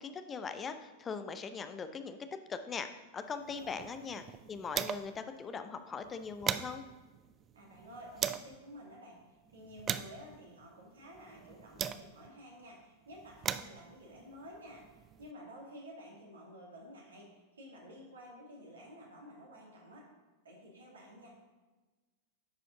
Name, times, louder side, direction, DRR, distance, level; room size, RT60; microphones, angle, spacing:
voice 1, 0.0-2.2 2.5-2.9 3.1-4.2 4.5-6.8, left 5 dB, 20° left, 9 dB, 0.6 m, -40 dB
sound 1, 3.5-5.3 5.6-5.7 6.0-8.6 9.2-12.4 13.1-15.3, right 8 dB, 25° right, 0.3 m, -40 dB
voice 2, 3.6-3.9 7.5-20.1 20.4-21.5, equal, 70° right, -2 dB, 2.2 m, -52 dB
10.0 x 5.1 x 3.8 m, 1.2 s
figure-of-eight pair, 90°, 0 cm